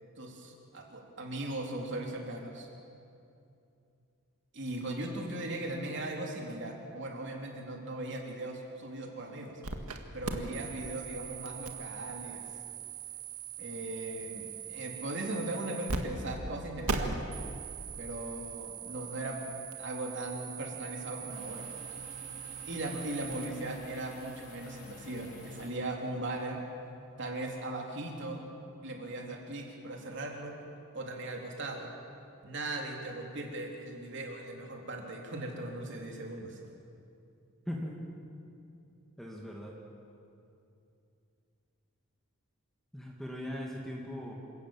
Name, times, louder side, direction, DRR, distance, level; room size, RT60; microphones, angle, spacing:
voice 1, 0.2-2.7 4.5-9.6 10.1-12.5 13.6-17.3 18.0-19.4 19.8-21.7 22.6-26.6 27.2-28.5 28.8-30.5 30.9-31.9 32.4-36.6, right 2 dB, 55° right, 0 dB, 3.5 m, -38 dB
sound 1, 9.6-10.0 10.2-16.0 16.2-16.4 16.9-23.5, right 5 dB, 90° right, 1.9 m, -40 dB
sound 2, 21.3-25.7, left 3 dB, 35° left, 6.1 m, -50 dB
voice 2, 37.7-38.0 39.2-39.8 42.9-44.3, equal, ahead, -2 dB, 2.2 m, -39 dB
27.5 x 17.0 x 7.3 m, 2.6 s
head